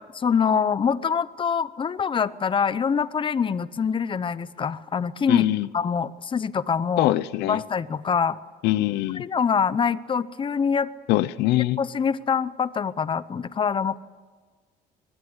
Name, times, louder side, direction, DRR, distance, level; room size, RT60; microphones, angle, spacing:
voice 1, 0.1-5.4 5.7-7.1 7.4-8.4 9.2-10.9 11.8-14.0, left 6 dB, 30° left, 16 dB, 0.8 m, -24 dB
voice 2, 5.3-5.7 7.0-7.6 8.6-9.3 11.1-11.8, left 16 dB, 90° left, 17 dB, 0.8 m, -23 dB
24.0 x 21.5 x 8.1 m, 1.5 s
cardioid pair, 110°, 17 cm